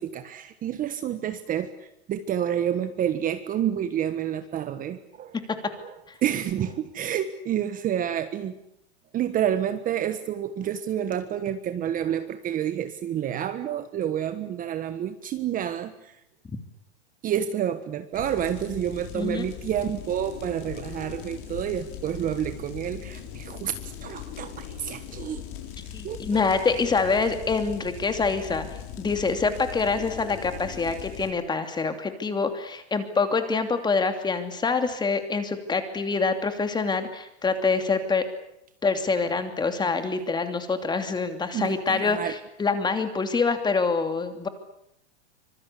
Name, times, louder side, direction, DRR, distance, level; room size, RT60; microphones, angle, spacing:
voice 1, 0.0-5.3 5.8-5.9 6.2-8.6 9.1-16.1 17.2-23.7 24.0-25.4 26.0-26.6 41.5-42.3, right 10 dB, 25° right, 10 dB, 1.4 m, -29 dB
sound 1, 18.1-31.3, left 9 dB, 50° left, 7.0 m, -40 dB
voice 2, 19.1-19.4 25.9-28.7 29.0-38.2 38.8-44.5, left 4 dB, 15° left, 7 dB, 2.8 m, -26 dB
25.5 x 23.0 x 8.4 m, 0.81 s
supercardioid pair, 140°, 33 cm